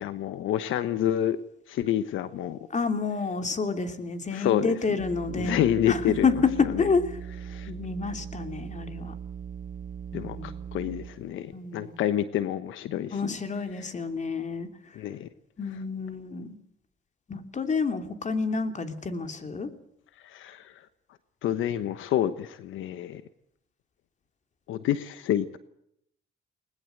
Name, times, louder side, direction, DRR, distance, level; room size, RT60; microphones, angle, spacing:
voice 1, 0.0-1.4 1.7-2.6 4.3-5.0 5.3-6.3 6.7-6.9 7.5-7.7 10.1-13.3 14.9-15.3 20.2-20.8 21.4-23.2 24.7-25.6, left 11 dB, 85° left, 12 dB, 1.1 m, -28 dB
voice 2, 2.7-7.1 7.6-9.1 10.1-10.5 11.5-12.0 13.1-15.0 15.6-16.6 17.3-19.7, left 4 dB, 35° left, 8 dB, 3.0 m, -29 dB
sound 1, 5.0-11.5, right 8 dB, 45° right, 0.8 m, -39 dB
21.0 x 20.0 x 7.9 m, 0.73 s
cardioid pair, 90°, 20 cm